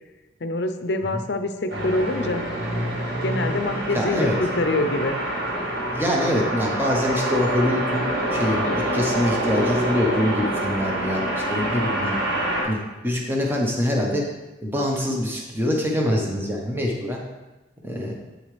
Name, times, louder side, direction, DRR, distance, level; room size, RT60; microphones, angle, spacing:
voice 1, 0.4-2.4 3.2-5.2, left 2 dB, 60° left, 9 dB, 0.6 m, -25 dB
sound 1, 1.7-12.6, right 1 dB, 65° right, 1.8 m, -26 dB
voice 2, 3.9-4.4 5.9-11.2 11.5-12.2 12.6-12.8 13.0-14.2 14.6-17.2 17.8-18.2, left 1 dB, 10° right, -1 dB, 0.9 m, -24 dB
8.3 x 7.2 x 3.3 m, 1.1 s
head